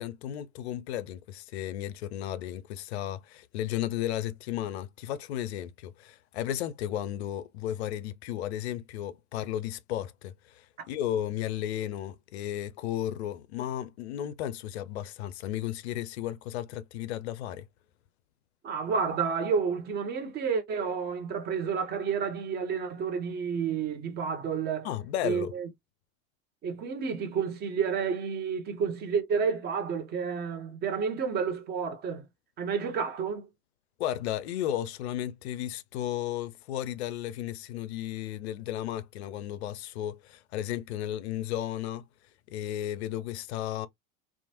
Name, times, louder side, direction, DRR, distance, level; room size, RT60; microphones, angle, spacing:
voice 1, 0.0-17.7 24.8-25.5 34.0-42.0 42.5-43.9, left 12 dB, 50° left, 0.4 m, -34 dB
voice 2, 18.6-24.9 25.2-25.7 26.6-32.2 32.6-33.5, right 6 dB, 25° right, 0.6 m, -30 dB
2.9 x 2.1 x 2.7 m
figure-of-eight pair, 85°, 42 cm